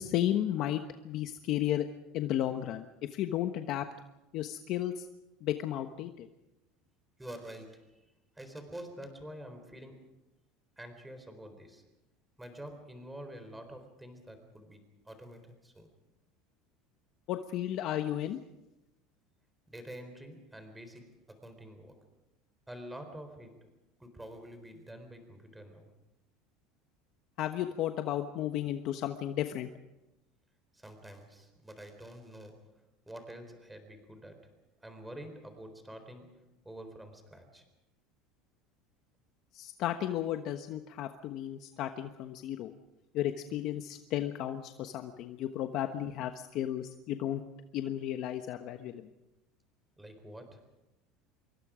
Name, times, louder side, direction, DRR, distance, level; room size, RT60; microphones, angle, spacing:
voice 1, 0.0-1.8 2.1-2.8 3.1-3.8 4.3-5.0 5.4-6.3 17.3-18.4 27.4-29.7 39.5-42.7 43.1-47.4 47.7-49.0, left 12 dB, 50° left, 7 dB, 1.2 m, -33 dB
voice 2, 7.2-10.1 10.8-11.9 12.4-15.9 19.7-22.1 22.7-23.7 24.0-25.9 30.7-37.7 50.0-50.7, right 1 dB, 5° right, 7 dB, 4.0 m, -48 dB
26.0 x 23.0 x 5.1 m, 0.95 s
supercardioid pair, 145°, 0 cm